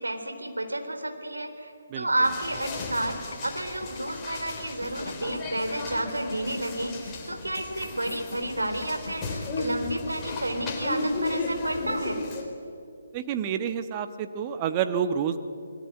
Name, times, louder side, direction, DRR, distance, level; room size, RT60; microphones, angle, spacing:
voice 1, 0.0-12.2, right 1 dB, 75° right, 6 dB, 3.8 m, -31 dB
sound 1, 2.2-12.4, left 2 dB, 15° left, 4.1 m, -35 dB
sound 2, 3.1-11.0, left 4 dB, 55° left, 1.7 m, -42 dB
voice 2, 13.1-15.4, right 8 dB, 25° right, 9 dB, 1.3 m, -28 dB
27.5 x 20.5 x 9.2 m, 2.5 s
figure-of-eight pair, 140°, 0 cm